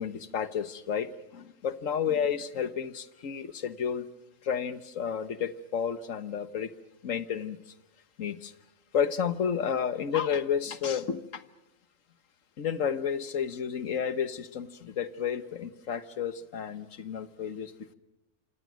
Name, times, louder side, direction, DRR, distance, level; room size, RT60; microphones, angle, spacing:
voice 1, 0.0-4.1 4.4-6.7 7.0-7.6 8.2-8.5 8.9-11.4 12.6-17.9, left 7 dB, 80° left, 12 dB, 1.6 m, -31 dB
27.0 x 26.5 x 6.3 m, 0.92 s
omnidirectional pair, 1.3 m